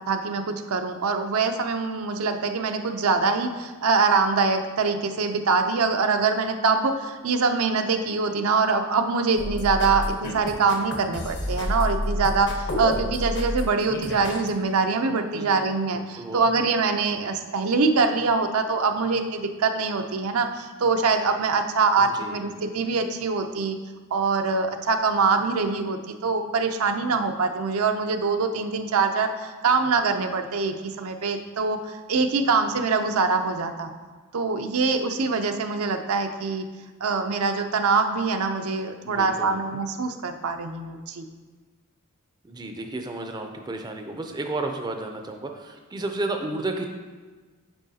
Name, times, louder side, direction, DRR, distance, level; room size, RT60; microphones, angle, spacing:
voice 1, 0.1-23.8 24.1-33.9 34.3-36.6 37.0-41.2, right 4 dB, 80° right, 6 dB, 0.5 m, -24 dB
sound 1, 9.4-14.5, left 1 dB, 55° left, 0.9 m, -30 dB
voice 2, 15.9-16.4 22.0-22.4 39.0-39.6 42.4-46.9, right 2 dB, 20° right, 4 dB, 0.4 m, -32 dB
9.0 x 5.5 x 2.8 m, 1.4 s
head